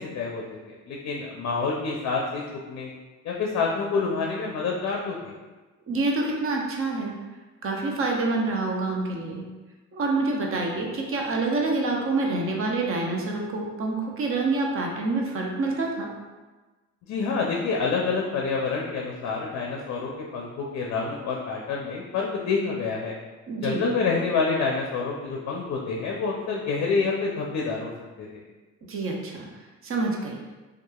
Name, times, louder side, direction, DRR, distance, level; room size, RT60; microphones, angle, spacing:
voice 1, 0.0-2.4 2.7-2.9 3.2-5.3 17.1-23.1 23.6-27.9 28.2-28.4, left 4 dB, 60° left, -1 dB, 0.5 m, -27 dB
voice 2, 5.9-7.1 7.6-9.5 9.9-16.1 23.5-23.9 28.8-29.5 29.8-30.4, right 3 dB, 45° right, 0 dB, 0.6 m, -27 dB
2.8 x 2.3 x 2.2 m, 1.2 s
cardioid pair, 90°, 30 cm